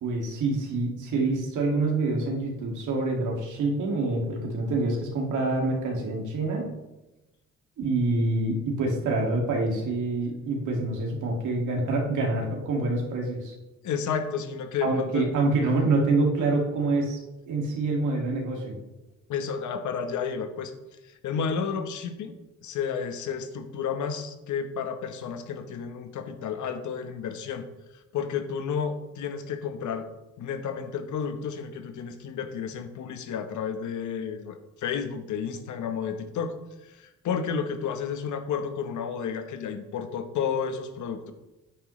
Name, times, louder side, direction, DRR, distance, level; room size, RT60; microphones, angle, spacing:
voice 1, 0.0-6.7 7.8-13.5 14.8-17.2 17.5-18.8, right 2 dB, 80° right, 0 dB, 2.2 m, -26 dB
voice 2, 13.8-15.3 19.3-20.7 21.0-22.4 22.6-27.7 28.1-30.1 30.4-41.3, left 6 dB, 75° left, 8 dB, 1.1 m, -31 dB
9.1 x 8.8 x 3.2 m, 1.0 s
cardioid pair, 90°, 30 cm